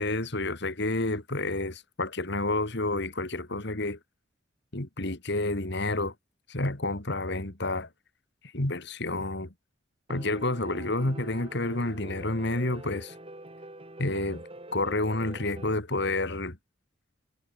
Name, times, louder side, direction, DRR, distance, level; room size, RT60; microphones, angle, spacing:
voice 1, 0.0-4.0 4.7-6.1 6.5-7.9 8.5-9.5 10.1-13.1 14.0-14.4 14.7-16.6, left 2 dB, 60° left, 2.7 m, -29 dB
Piano, 10.1-15.7, right 1 dB, 30° right, 7.6 m, -45 dB
head